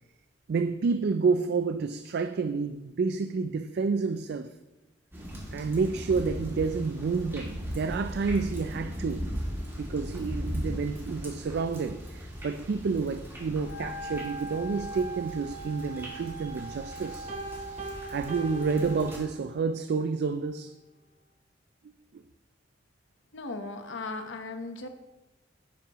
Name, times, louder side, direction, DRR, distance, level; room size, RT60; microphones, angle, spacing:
voice 1, 0.5-4.5 5.5-9.3 9.8-17.3 18.1-20.7 22.1-22.2, right 4 dB, 60° right, 0.4 m, -29 dB
sound 1, 5.1-19.2, equal, 15° right, 2.5 m, -38 dB
Wind instrument woodwind instrument, 13.6-19.2, right 2 dB, 45° left, 0.7 m, -41 dB
Piano, 17.3-19.7, right 2 dB, 40° right, 0.9 m, -41 dB
voice 2, 23.3-24.9, left 3 dB, 90° left, 1.0 m, -37 dB
10.0 x 9.3 x 3.0 m
head